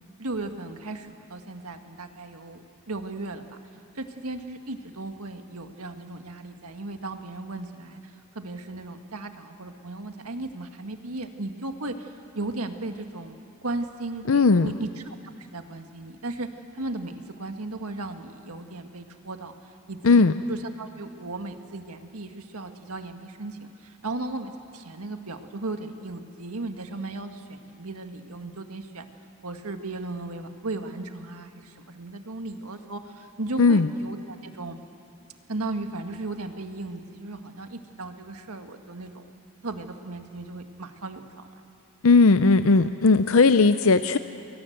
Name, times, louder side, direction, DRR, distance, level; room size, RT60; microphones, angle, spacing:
voice 1, 0.2-3.6 4.0-13.4 13.6-16.5 16.7-19.5 19.9-20.2 20.5-29.1 29.4-34.8 35.5-39.3 39.6-41.5, right 2 dB, 85° right, 6 dB, 1.8 m, -36 dB
voice 2, 14.3-14.7 20.0-20.3 33.6-33.9 42.0-44.2, left 4 dB, 70° left, 11 dB, 0.6 m, -17 dB
29.0 x 22.0 x 8.0 m, 2.6 s
head